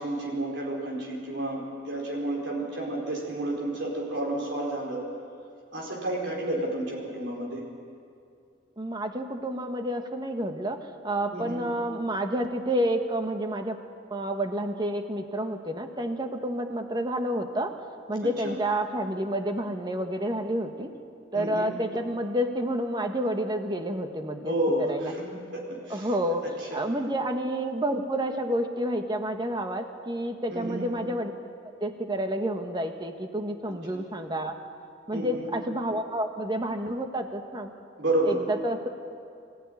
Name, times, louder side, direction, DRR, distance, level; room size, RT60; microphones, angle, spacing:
voice 1, 0.0-5.0 5.7-7.6 11.3-11.6 18.2-18.6 21.3-21.7 24.5-26.1 26.4-26.8 30.5-30.9 35.1-35.5 38.0-38.4, right 1 dB, 65° right, -2 dB, 4.7 m, -31 dB
voice 2, 8.8-10.8 11.0-13.8 14.1-17.7 18.1-20.9 21.3-24.5 24.9-25.1 25.9-26.4 26.7-31.3 31.8-34.5 35.1-37.7 38.3-38.9, right 1 dB, 25° right, 5 dB, 1.4 m, -29 dB
23.5 x 15.0 x 9.7 m, 2.4 s
head